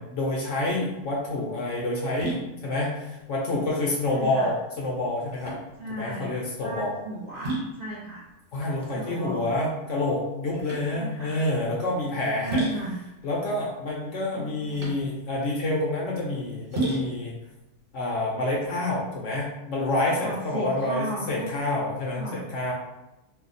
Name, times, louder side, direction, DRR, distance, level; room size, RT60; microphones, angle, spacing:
voice 1, 0.0-5.6 5.9-7.0 8.5-12.7 13.2-17.3 17.9-22.7, left 2 dB, 65° left, -3 dB, 0.8 m, -28 dB
sound 1, 0.6-19.2, right 1 dB, 40° right, 1.1 m, -36 dB
voice 2, 4.1-4.5 5.8-6.3 6.6-8.2 8.9-9.5 10.9-11.4 12.3-13.0 14.3-14.9 20.2-21.5 22.1-22.4, right 1 dB, 65° right, -8 dB, 0.5 m, -35 dB
2.6 x 2.0 x 4.0 m, 0.97 s
omnidirectional pair, 1.7 m